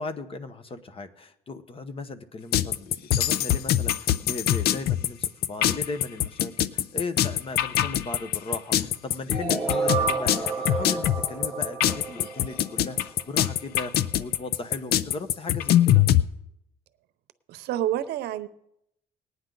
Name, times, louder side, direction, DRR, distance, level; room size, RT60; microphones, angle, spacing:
voice 1, 0.0-16.1, left 3 dB, 35° left, 10 dB, 1.0 m, -37 dB
sound 1, 2.5-16.2, left 12 dB, 65° left, 0.5 m, -23 dB
sound 2, 9.3-13.2, right 5 dB, ahead, 2.0 m, -30 dB
voice 2, 17.5-18.5, right 12 dB, 75° right, 14 dB, 0.7 m, -28 dB
19.5 x 9.5 x 3.9 m, 0.79 s
cardioid pair, 110°, 17 cm